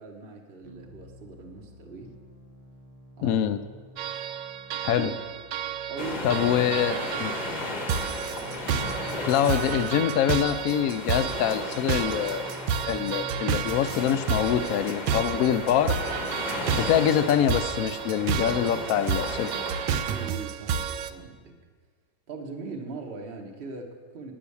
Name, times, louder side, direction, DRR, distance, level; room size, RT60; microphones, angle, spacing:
voice 1, 0.0-2.2 3.2-3.4 4.1-4.2 4.8-5.1 5.9-6.4 6.9-7.3 20.0-21.6 22.3-24.3, right 4 dB, 40° right, 2 dB, 1.0 m, -40 dB
sound 1, 0.6-6.6 8.4-14.6, equal, 60° right, 0.3 m, -48 dB
voice 2, 3.2-3.6 4.8-5.1 6.2-7.3 9.3-12.4 12.9-16.0 16.8-19.5, left 9 dB, 70° left, 11 dB, 0.8 m, -25 dB
sound 2, 4.0-21.1, right 7 dB, 85° right, 1.2 m, -31 dB
sound 3, 6.0-20.3, left 2 dB, 35° left, 0.8 m, -36 dB
9.4 x 6.2 x 8.3 m, 1.5 s
omnidirectional pair, 1.8 m